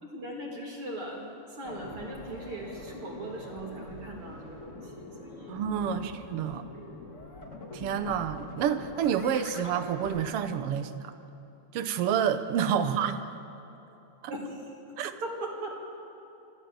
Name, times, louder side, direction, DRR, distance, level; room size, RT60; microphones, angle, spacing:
voice 1, 0.0-6.1 6.7-6.8 12.8-12.9 14.3-14.8 15.2-15.7, right 1 dB, 45° right, -2 dB, 3.8 m, -40 dB
sound 1, 1.6-10.3, left 2 dB, 30° left, 1.8 m, -44 dB
voice 2, 5.5-6.7 7.7-11.1 11.7-13.2 14.2-14.3 15.0-15.1, right 8 dB, 65° right, 10 dB, 1.6 m, -29 dB
26.5 x 14.0 x 7.6 m, 2.9 s
omnidirectional pair, 3.4 m